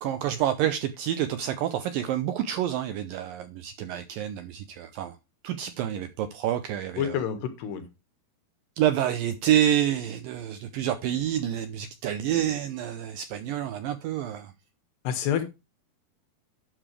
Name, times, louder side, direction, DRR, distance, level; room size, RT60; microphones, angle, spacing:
voice 1, 0.0-5.2 5.4-7.2 8.8-14.5, right 11 dB, 85° right, 2.0 m, -28 dB
voice 2, 7.0-7.8 15.0-15.4, left 9 dB, 80° left, 3.5 m, -28 dB
11.5 x 7.4 x 3.3 m
omnidirectional pair, 4.8 m